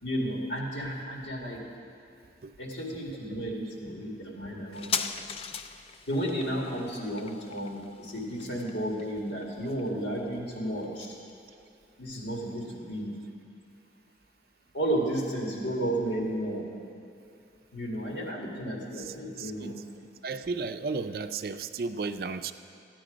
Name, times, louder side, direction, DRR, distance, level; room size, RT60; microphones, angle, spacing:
voice 1, 0.0-1.6 2.6-5.1 6.1-11.2 12.0-13.1 14.7-16.6 17.7-19.7, right 1 dB, 90° left, -2 dB, 2.2 m, -33 dB
sound 1, 4.7-11.8 12.1-12.2, left 6 dB, 35° left, 0.4 m, -39 dB
voice 2, 19.0-19.7 20.2-22.5, right 4 dB, 55° right, 10 dB, 0.4 m, -34 dB
14.0 x 9.2 x 5.1 m, 2.5 s
head